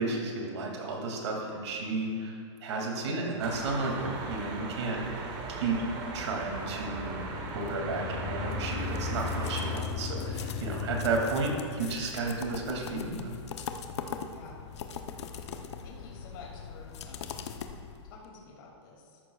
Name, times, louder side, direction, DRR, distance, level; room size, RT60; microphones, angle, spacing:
voice 1, 0.0-2.4 2.6-5.8 6.1-7.2 7.5-13.3, right 3 dB, 70° right, 0 dB, 2.4 m, -33 dB
sound 1, 3.4-9.7, right 3 dB, 25° right, 1.1 m, -38 dB
sound 2, 5.4-12.2, left 6 dB, 25° left, 0.4 m, -38 dB
sound 3, 8.5-18.3, left 7 dB, 65° left, 0.8 m, -41 dB
voice 2, 14.3-14.6 15.8-17.3 18.1-19.2, left 4 dB, 45° left, -3 dB, 2.4 m, -50 dB
13.5 x 11.0 x 2.4 m, 2.4 s
hypercardioid pair, 165°, 15 cm